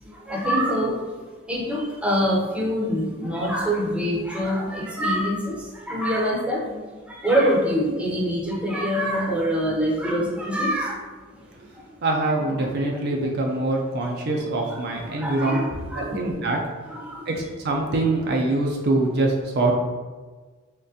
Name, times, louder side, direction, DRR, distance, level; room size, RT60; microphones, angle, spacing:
voice 1, 0.3-1.0 1.5-6.8 7.1-11.0 14.7-16.3 16.9-17.2, equal, 5° right, -4 dB, 0.7 m, -25 dB
voice 2, 12.0-15.6 15.9-16.6 17.3-19.8, right 2 dB, 50° right, 1 dB, 0.4 m, -24 dB
3.6 x 3.1 x 2.7 m, 1.4 s
head